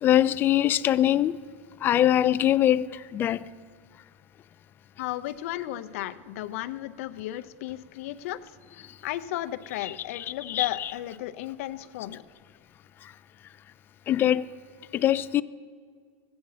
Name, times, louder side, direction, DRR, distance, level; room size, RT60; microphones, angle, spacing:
voice 1, 0.0-1.4 1.8-2.8 3.1-3.4 10.5-10.7 14.1-14.4 14.9-15.4, left 12 dB, 25° left, 0.3 m, -22 dB
voice 2, 5.0-8.4 9.0-12.2, left 14 dB, 70° left, 0.6 m, -34 dB
14.5 x 8.7 x 5.6 m
supercardioid pair, 145°, 8 cm